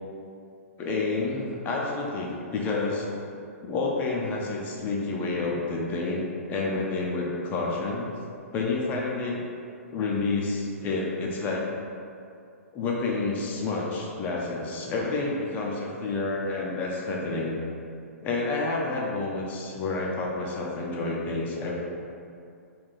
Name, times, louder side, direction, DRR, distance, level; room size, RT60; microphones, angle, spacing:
voice 1, 0.8-3.1 3.6-8.1 8.5-9.4 9.9-11.6 12.7-17.6 18.2-21.7, left 3 dB, 20° left, -3 dB, 0.5 m, -29 dB
3.6 x 2.3 x 4.0 m, 2.5 s
figure-of-eight pair, 115°, 8 cm